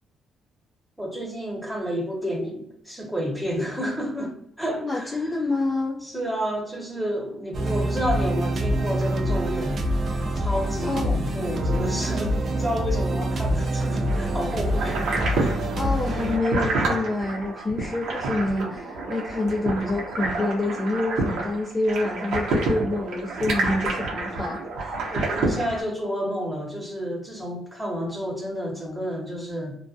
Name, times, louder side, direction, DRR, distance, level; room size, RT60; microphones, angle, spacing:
voice 1, 1.0-5.3 6.0-9.8 10.3-15.6 18.3-18.7 25.1-29.8, equal, 5° right, -1 dB, 0.9 m, -30 dB
voice 2, 4.8-6.0 10.8-11.2 15.7-25.0, left 2 dB, 25° left, -2 dB, 0.4 m, -27 dB
sound 1, 7.5-17.7, equal, 50° right, 0.4 m, -26 dB
sound 2, 14.1-25.8, right 2 dB, 80° right, 0.7 m, -28 dB
2.2 x 2.1 x 2.6 m, 0.71 s
cardioid pair, 90°, 0 cm